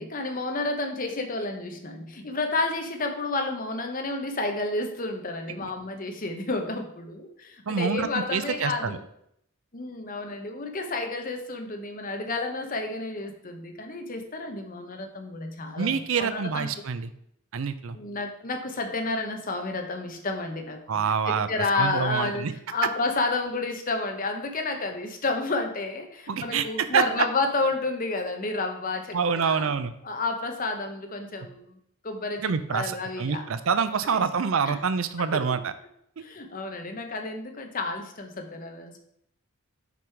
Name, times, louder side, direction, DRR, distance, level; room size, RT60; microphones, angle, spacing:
voice 1, 0.0-9.0 9.7-16.8 17.9-20.8 21.3-29.7 30.0-31.8 32.0-33.4 34.1-34.2 34.7-34.8 35.2-35.6 36.2-39.0, left 3 dB, 40° left, 4 dB, 0.9 m, -31 dB
voice 2, 7.7-9.0 15.8-17.1 17.5-18.0 20.9-21.5 21.7-22.5 26.3-27.1 29.1-29.9 32.4-35.7, right 6 dB, 65° right, 12 dB, 0.5 m, -26 dB
6.0 x 5.4 x 4.6 m, 0.73 s
head